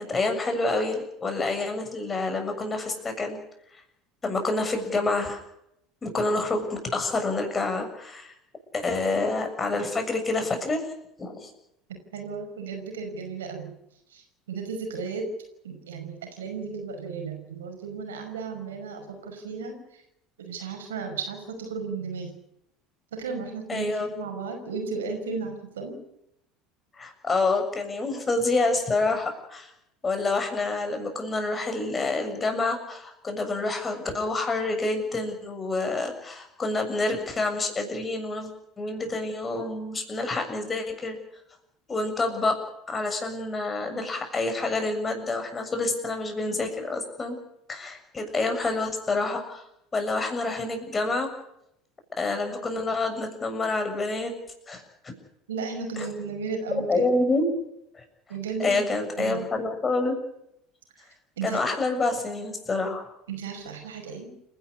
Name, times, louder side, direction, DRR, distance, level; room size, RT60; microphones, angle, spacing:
voice 1, 0.0-3.4 4.2-5.4 6.0-8.3 8.7-10.9 11.2-11.5 23.7-24.1 26.9-29.7 30.0-38.5 38.8-41.2 41.9-42.6 42.9-47.4 47.7-49.6 49.9-51.3 52.2-54.3 54.7-54.8 56.0-56.1 56.9-57.5 57.9-58.0 58.6-60.2 61.4-63.1, left 3 dB, 25° left, 5 dB, 7.1 m, -27 dB
voice 2, 12.1-13.7 14.1-15.2 15.6-19.8 20.4-22.3 23.1-25.9 55.5-57.1 58.3-58.9 59.2-59.5 61.4-61.6 63.3-64.3, right 5 dB, 80° right, 4 dB, 5.6 m, -34 dB
29.5 x 11.5 x 9.8 m, 0.79 s
hypercardioid pair, 70°, 0 cm